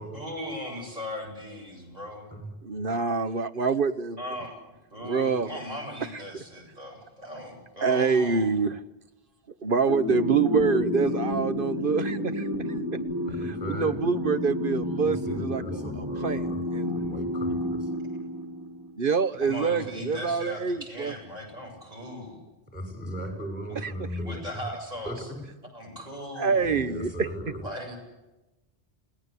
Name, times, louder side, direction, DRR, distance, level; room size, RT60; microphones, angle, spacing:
voice 1, 0.0-2.3 4.2-4.5 4.9-8.5 19.4-22.4 24.2-25.3 25.7-26.7 27.6-28.0, left 1 dB, 35° right, 0 dB, 8.3 m, -38 dB
voice 2, 2.7-4.2 5.0-5.5 7.8-8.8 9.6-12.7 12.9-13.0 13.4-16.4 16.7-16.9 19.0-21.1 23.8-23.9 26.4-27.3, right 5 dB, 55° right, 11 dB, 1.2 m, -26 dB
sound 1, 9.9-18.9, left 1 dB, 20° right, 6.1 m, -30 dB
voice 3, 13.2-14.0 15.2-16.6 16.9-17.9 22.7-24.6 25.0-25.2 26.6-27.6, equal, 5° left, 4 dB, 6.3 m, -37 dB
29.5 x 18.0 x 8.3 m, 1.0 s
omnidirectional pair, 1.1 m